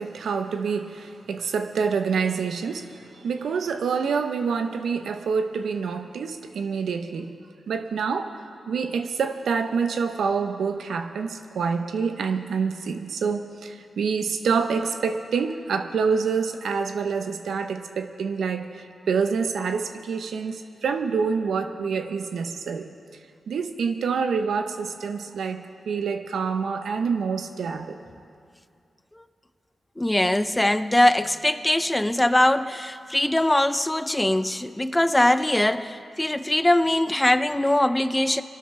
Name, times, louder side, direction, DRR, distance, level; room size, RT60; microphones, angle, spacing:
voice 1, 0.0-7.3 7.7-22.9 23.5-28.0, right 5 dB, 80° right, 0.8 m, -27 dB
voice 2, 30.0-38.4, left 1 dB, 15° left, 0.5 m, -22 dB
24.0 x 12.5 x 3.3 m
supercardioid pair, 45°, 0 cm